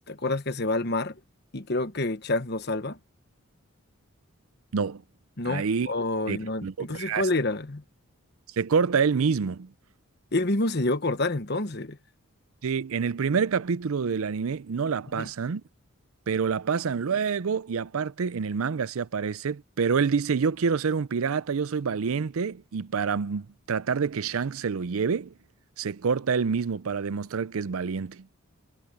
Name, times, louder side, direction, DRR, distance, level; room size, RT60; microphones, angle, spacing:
voice 1, 0.1-1.2 1.5-3.0 5.4-7.8 10.3-12.0 15.1-15.3, left 2 dB, 50° left, 1.2 m, -28 dB
voice 2, 5.5-5.9 6.3-7.3 8.6-9.7 12.6-15.6 16.3-25.3 25.8-28.3, right 5 dB, 75° right, 0.5 m, -27 dB
head